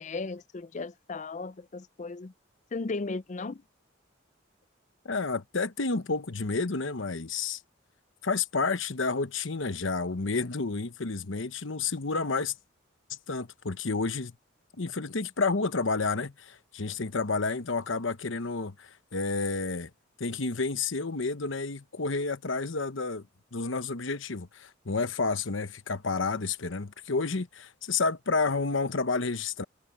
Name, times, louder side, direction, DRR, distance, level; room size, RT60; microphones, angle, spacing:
voice 1, 0.0-2.3 2.7-3.6, left 3 dB, 40° left, 0.5 m, -36 dB
voice 2, 5.0-7.6 8.2-12.6 13.3-14.3 14.8-19.9 20.2-23.3 23.5-29.6, left 4 dB, 70° left, 1.1 m, -30 dB
head